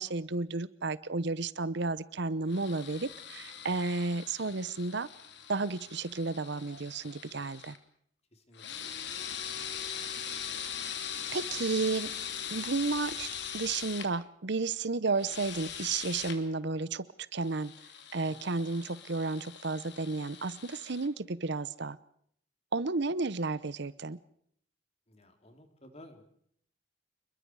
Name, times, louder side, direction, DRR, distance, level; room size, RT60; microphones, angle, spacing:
voice 1, 0.0-5.1 5.5-7.7 10.8-10.9 11.3-12.1 12.5-13.3 13.5-17.0 17.3-17.7 18.1-22.0 22.7-24.2, right 3 dB, 60° right, 17 dB, 0.8 m, -32 dB
sound 1, 2.5-7.8 8.5-14.1 15.2-16.4 17.4-21.1, left 8 dB, 60° left, 2.8 m, -41 dB
voice 2, 8.3-9.1 18.3-18.4 25.1-26.2, left 1 dB, 30° left, 6 dB, 3.7 m, -55 dB
29.0 x 22.0 x 4.8 m, 0.66 s
head